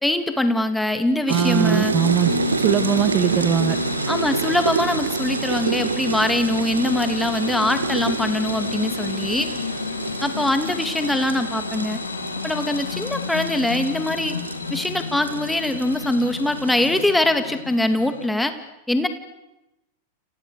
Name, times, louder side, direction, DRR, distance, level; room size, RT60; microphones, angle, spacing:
voice 1, 0.0-1.9 4.1-9.5 10.2-12.0 12.4-14.4 14.7-18.5 18.9-19.1, left 1 dB, 5° left, 8 dB, 2.6 m, -23 dB
voice 2, 1.3-3.8, right 9 dB, 30° right, 11 dB, 1.7 m, -21 dB
sound 1, 1.3-17.2, right 5 dB, 75° right, 2.0 m, -28 dB
sound 2, 1.9-18.3, left 7 dB, 70° left, 2.4 m, -32 dB
29.5 x 29.0 x 6.6 m, 0.93 s
figure-of-eight pair, 90°, 0 cm